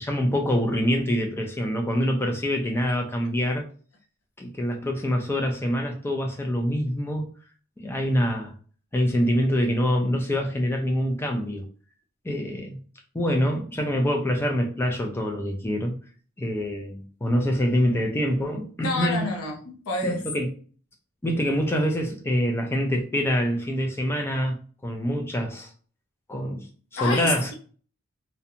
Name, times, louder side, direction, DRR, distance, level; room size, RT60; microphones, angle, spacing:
voice 1, 0.0-3.6 4.4-7.3 7.8-8.5 8.9-11.7 12.2-12.8 13.1-15.9 16.4-19.2 20.0-20.5 21.2-25.7 26.3-26.7 26.9-27.5, equal, 10° left, 0.3 m, -25 dB
voice 2, 18.8-20.2 27.0-27.5, left 2 dB, 75° left, 0.6 m, -28 dB
2.5 x 2.1 x 2.7 m
head